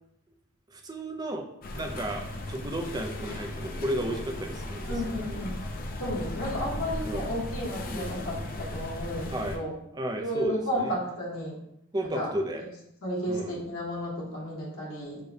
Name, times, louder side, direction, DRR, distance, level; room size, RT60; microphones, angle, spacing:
voice 1, 0.7-1.5 1.7-5.6 7.0-7.2 7.9-8.2 9.3-9.6 9.9-11.0 11.9-12.6 13.3-13.6, right 1 dB, 20° right, 3 dB, 0.4 m, -34 dB
sound 1, 1.6-9.6, left 1 dB, 45° left, 0.4 m, -36 dB
voice 2, 4.9-5.6 6.0-9.7 10.2-11.6 12.1-12.3 13.0-15.2, equal, 75° left, -5 dB, 1.1 m, -32 dB
6.3 x 2.2 x 2.7 m, 0.79 s
head